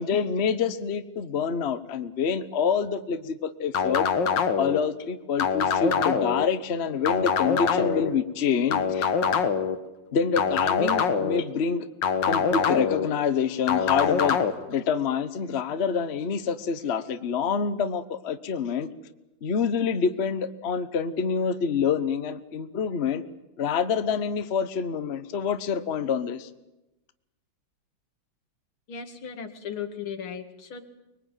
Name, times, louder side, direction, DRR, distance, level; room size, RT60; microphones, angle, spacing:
voice 1, 0.0-4.1 4.6-9.1 10.1-11.9 12.3-14.4 14.7-18.9 19.4-23.2 23.6-26.5, left 6 dB, 40° left, 11 dB, 1.1 m, -27 dB
sound 1, 3.7-4.8 5.4-6.4 7.1-8.1 8.7-9.8 10.4-11.4 12.0-13.1 13.7-14.5, left 6 dB, 65° left, 2.0 m, -24 dB
voice 2, 28.9-30.8, left 7 dB, 85° left, 7 dB, 2.9 m, -36 dB
24.5 x 22.0 x 9.2 m, 0.98 s
omnidirectional pair, 2.2 m